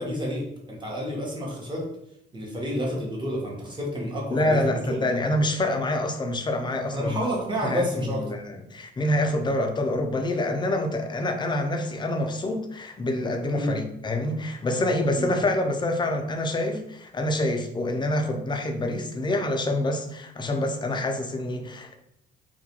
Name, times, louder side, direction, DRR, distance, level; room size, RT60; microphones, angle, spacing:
voice 1, 0.0-1.9 2.3-5.0 6.9-8.2 13.5-13.8 15.1-15.3, equal, 25° right, -2 dB, 0.8 m, -30 dB
voice 2, 4.3-7.2 7.6-22.0, left 1 dB, 25° left, 5 dB, 0.4 m, -26 dB
2.3 x 2.2 x 2.8 m, 0.76 s
cardioid pair, 90°, 20 cm